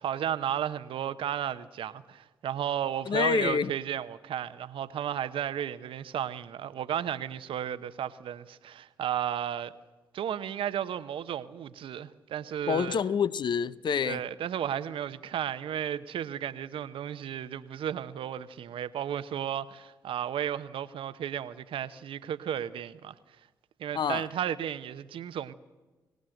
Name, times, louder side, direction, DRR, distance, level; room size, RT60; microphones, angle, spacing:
voice 1, 0.0-9.7 10.1-13.0 14.0-23.1 23.8-25.5, right 10 dB, 65° right, 0.9 m, -33 dB
voice 2, 3.1-3.7 12.7-14.2 23.9-24.3, left 6 dB, 55° left, 0.8 m, -27 dB
23.0 x 18.5 x 7.9 m
hypercardioid pair, 40°, 9 cm